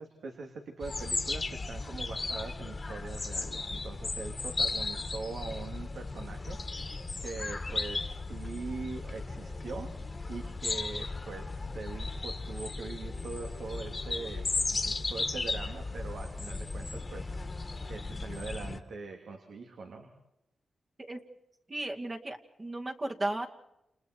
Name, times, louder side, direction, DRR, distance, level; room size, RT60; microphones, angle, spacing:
voice 1, 0.0-9.9 10.3-20.1, right 4 dB, 75° right, 2 dB, 3.1 m, -42 dB
sound 1, 0.8-18.8, left 3 dB, 35° left, 1.8 m, -36 dB
voice 2, 21.7-23.5, right 2 dB, 30° right, 2 dB, 2.3 m, -35 dB
29.5 x 29.0 x 4.6 m, 0.85 s
cardioid pair, 80°, 0 cm